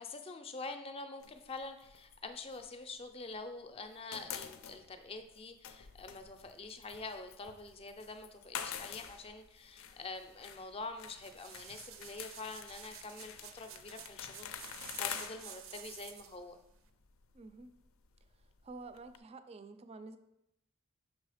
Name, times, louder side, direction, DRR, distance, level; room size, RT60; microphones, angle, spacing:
voice 1, 0.0-16.6, left 3 dB, 30° left, 7 dB, 0.5 m, -46 dB
sound 1, 1.2-3.5 3.7-19.2, left 8 dB, 80° left, 0.5 m, -48 dB
sound 2, 11.2-16.4 16.9-17.0, right 9 dB, 80° right, 0.5 m, -51 dB
voice 2, 17.3-17.7 18.4-20.2, right 3 dB, 30° right, 11 dB, 0.3 m, -50 dB
6.2 x 3.7 x 4.9 m, 0.88 s
head